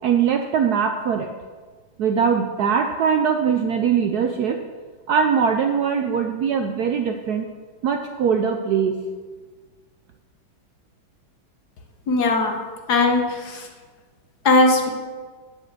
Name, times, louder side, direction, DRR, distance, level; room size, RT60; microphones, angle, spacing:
voice 1, 0.0-1.3 2.0-4.6 5.1-7.5 7.8-9.0, right 7 dB, 75° right, 5 dB, 0.9 m, -21 dB
voice 2, 12.1-12.6 12.9-13.6 14.4-14.9, left 2 dB, 55° left, 3 dB, 1.5 m, -18 dB
8.2 x 6.9 x 6.6 m, 1.4 s
omnidirectional pair, 2.3 m